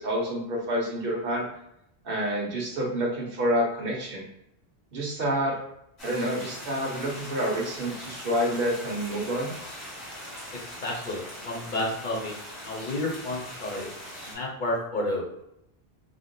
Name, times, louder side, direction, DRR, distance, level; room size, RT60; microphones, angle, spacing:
voice 1, 0.0-1.5 2.0-4.2 4.9-5.6 6.0-9.5, equal, 60° right, -2 dB, 1.0 m, -28 dB
sound 1, 6.0-14.4, equal, 80° left, 1.6 m, -41 dB
voice 2, 10.8-12.4 12.6-13.9 14.2-15.3, left 1 dB, 55° left, -2 dB, 0.8 m, -31 dB
3.6 x 2.1 x 2.6 m, 0.81 s
omnidirectional pair, 1.1 m